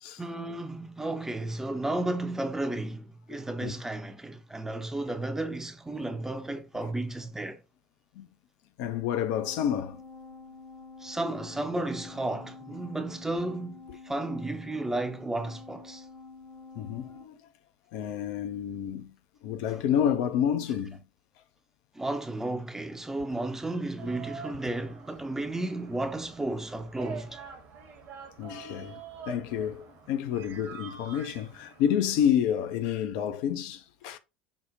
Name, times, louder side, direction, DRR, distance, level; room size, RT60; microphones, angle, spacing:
voice 1, 0.2-7.6 11.0-16.1 19.7-19.8 21.9-27.4, right 2 dB, 10° right, 0.5 m, -33 dB
voice 2, 8.8-10.0 16.8-17.4 17.9-19.1 19.4-21.0 28.4-29.0 29.3-34.2, left 9 dB, 55° left, 0.4 m, -29 dB
sound 1, 9.4-17.3, left 4 dB, 90° left, 2.2 m, -48 dB
sound 2, 24.0-32.3, right 5 dB, 45° right, 0.9 m, -46 dB
5.1 x 2.0 x 2.7 m
figure-of-eight pair, 75°, 6 cm